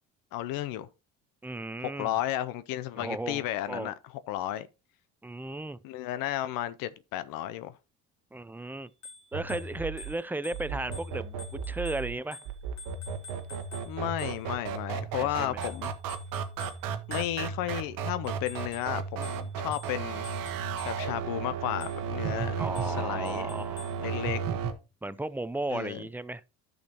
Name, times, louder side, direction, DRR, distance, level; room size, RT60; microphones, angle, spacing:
voice 1, 0.3-0.9 2.0-3.9 4.3-4.7 5.8-7.7 13.9-15.9 17.1-20.3 20.8-22.5 22.8-23.5 24.0-24.4 25.7-26.0, left 13 dB, 80° left, 0.5 m, -33 dB
voice 2, 1.4-2.1 3.0-3.9 5.2-5.8 8.3-8.9 9.3-12.4 15.1-15.7 22.6-24.3 25.0-26.4, right 2 dB, 5° right, 0.4 m, -35 dB
Bicycle bell, 8.9-14.7 15.6-17.7 18.2-21.2 21.8-22.2 22.8-24.1, left 4 dB, 55° left, 1.9 m, -49 dB
sound 1, 9.3-24.7, right 6 dB, 85° right, 1.0 m, -35 dB
10.5 x 6.5 x 2.8 m
cardioid pair, 85°, 33 cm